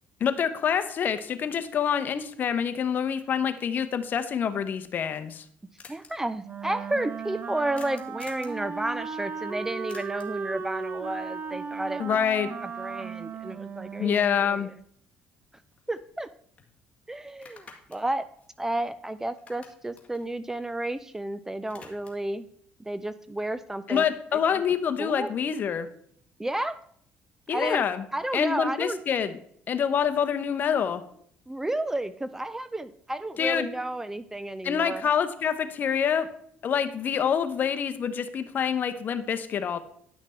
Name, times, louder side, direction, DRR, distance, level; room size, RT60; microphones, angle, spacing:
voice 1, 0.2-5.4 12.0-12.5 14.0-14.7 23.9-25.9 27.5-28.0 28.3-29.3 29.7-31.0 33.4-33.7 34.6-36.3 36.6-39.8, left 7 dB, 50° left, 10 dB, 0.9 m, -26 dB
sound 1, 5.8-6.1 7.7-8.6 9.9-10.4 14.6-14.7 15.1-16.3 16.6-16.7 17.3-19.1 19.3-21.2 21.5-22.3, left 4 dB, 30° left, 1.9 m, -51 dB
voice 2, 5.9-12.2 12.6-14.8 15.9-16.3 17.1-18.3 18.6-22.5 22.8-24.1 24.3-24.6 25.0-25.3 26.4-26.8 27.5-29.0 31.5-35.1, right 1 dB, 10° right, 14 dB, 0.4 m, -32 dB
Wind instrument woodwind instrument, 6.4-14.7, right 5 dB, 45° right, 0.8 m, -36 dB
10.5 x 5.9 x 4.4 m, 0.65 s
cardioid pair, 100°, 4 cm